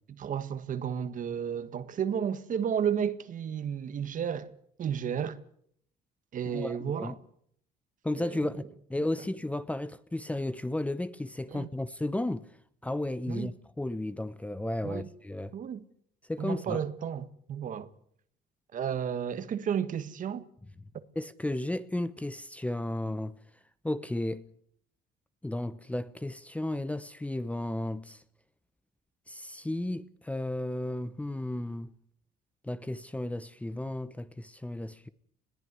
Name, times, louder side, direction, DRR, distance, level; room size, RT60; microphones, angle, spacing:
voice 1, 0.2-4.5 4.8-5.4 6.3-7.2 8.2-8.5 11.5-11.7 13.3-13.5 14.8-15.1 15.5-15.8 16.4-17.9 18.7-20.5, right 8 dB, 50° right, 1.7 m, -32 dB
voice 2, 6.5-7.2 8.0-8.6 8.9-12.5 12.8-15.5 16.3-16.8 21.2-23.3 23.8-24.5 25.4-28.2 29.3-31.9 32.6-35.1, left 1 dB, 10° left, 0.9 m, -33 dB
21.0 x 15.0 x 9.5 m
cardioid pair, 110°, 17 cm